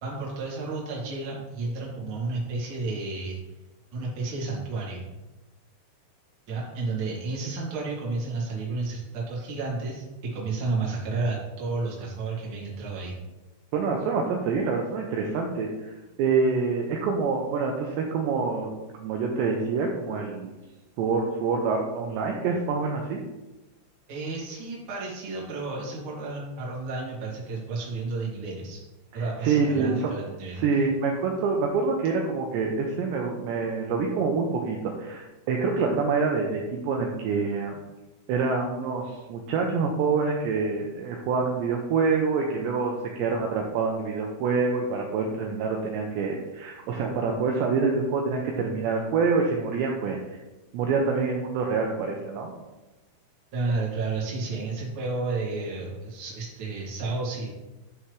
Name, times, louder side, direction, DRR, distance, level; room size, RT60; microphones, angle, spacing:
voice 1, 0.0-3.4 3.9-5.1 6.5-13.2 24.1-28.8 29.1-30.6 53.5-57.5, right 3 dB, 45° right, -5 dB, 1.7 m, -31 dB
voice 2, 13.7-15.9 16.2-18.7 19.0-20.5 21.0-23.2 29.1-30.1 30.5-37.8 38.3-50.4 50.7-52.5, right 4 dB, 85° right, 1 dB, 2.6 m, -26 dB
10.0 x 5.7 x 3.2 m, 1.1 s
omnidirectional pair, 5.8 m